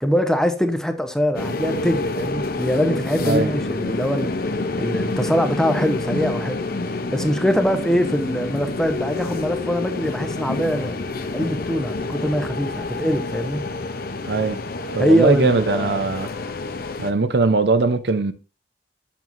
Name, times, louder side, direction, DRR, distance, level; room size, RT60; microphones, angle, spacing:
voice 1, 0.0-4.4 4.8-6.6 7.1-11.0 11.3-13.6 15.0-16.0, equal, 5° left, 0.8 m, -22 dB
sound 1, 1.3-17.1, left 2 dB, 55° left, 0.8 m, -28 dB
voice 2, 14.3-14.6 14.9-16.3 17.0-18.3, right 3 dB, 65° right, 0.6 m, -20 dB
7.6 x 7.3 x 2.6 m
head